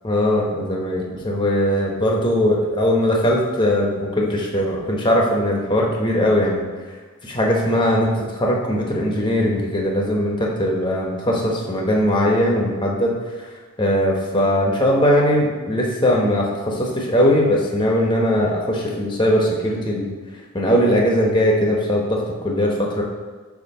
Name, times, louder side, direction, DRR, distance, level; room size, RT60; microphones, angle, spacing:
voice 1, 0.0-6.6 7.2-13.1 13.8-20.1 20.5-23.0, equal, 20° left, -1 dB, 0.9 m, -20 dB
6.9 x 2.8 x 5.4 m, 1.4 s
head